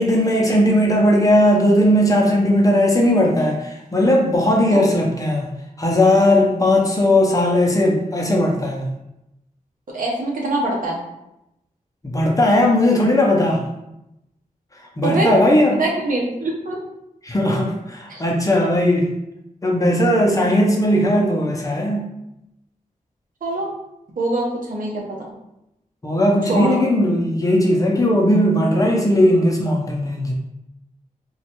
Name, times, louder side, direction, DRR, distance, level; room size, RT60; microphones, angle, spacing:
voice 1, 0.0-5.5 5.8-8.9 12.0-13.6 15.0-15.8 17.2-19.1 19.6-22.1 26.0-30.3, left 1 dB, 25° left, -1 dB, 0.6 m, -17 dB
voice 2, 9.9-11.0 15.0-15.3 15.8-16.8 18.1-18.2 20.5-20.6 23.4-23.7 24.2-25.3 26.5-26.8, right 2 dB, 70° right, -2 dB, 0.8 m, -23 dB
3.0 x 2.3 x 2.9 m, 0.87 s
wide cardioid pair, 90°, 14 cm